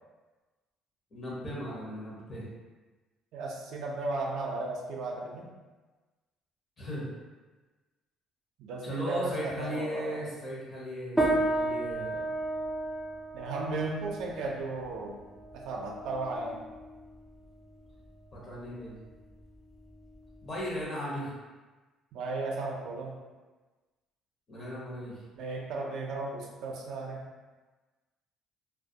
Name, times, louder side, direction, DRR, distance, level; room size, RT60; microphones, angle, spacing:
voice 1, 1.1-2.5 6.8-7.1 8.8-12.3 18.3-19.1 20.4-21.3 24.5-25.2, equal, 30° left, -6 dB, 0.7 m, -37 dB
voice 2, 3.3-5.5 8.6-10.2 13.3-15.2 15.5-16.6 22.1-23.1 25.4-27.2, right 3 dB, 75° right, -1 dB, 0.4 m, -35 dB
sound 1, 11.2-20.8, right 1 dB, ahead, 0.4 m, -34 dB
2.2 x 2.1 x 2.7 m, 1.3 s
cardioid pair, 130°, 0 cm